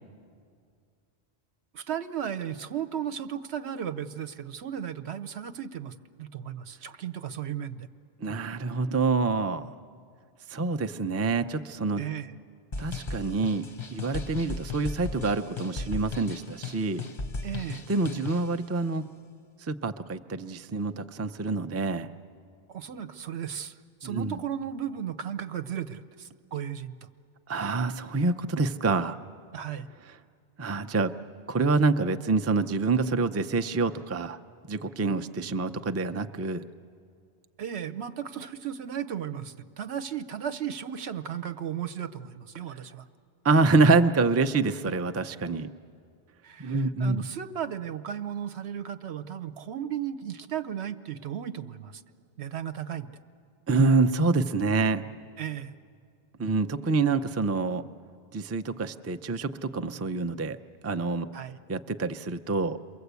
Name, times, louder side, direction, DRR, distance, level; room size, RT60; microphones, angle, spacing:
voice 1, 1.7-7.9 12.0-12.4 17.4-17.9 22.7-27.1 29.5-29.9 37.6-43.0 46.4-52.0 52.4-53.2 55.4-55.8 61.3-61.6, right 9 dB, 80° right, 12 dB, 1.1 m, -35 dB
voice 2, 8.2-9.7 10.5-12.0 12.8-17.1 17.9-19.0 19.6-22.1 24.0-24.4 27.5-29.2 30.6-31.1 31.5-34.4 34.7-36.6 43.4-45.7 46.6-47.2 53.7-55.0 56.4-57.8 58.3-60.6 60.8-61.3 61.7-62.8, right 3 dB, 20° right, 9 dB, 0.4 m, -26 dB
sound 1, 12.7-18.6, left 4 dB, 35° left, 0.6 m, -36 dB
28.5 x 22.5 x 8.2 m, 2.2 s
omnidirectional pair, 1.1 m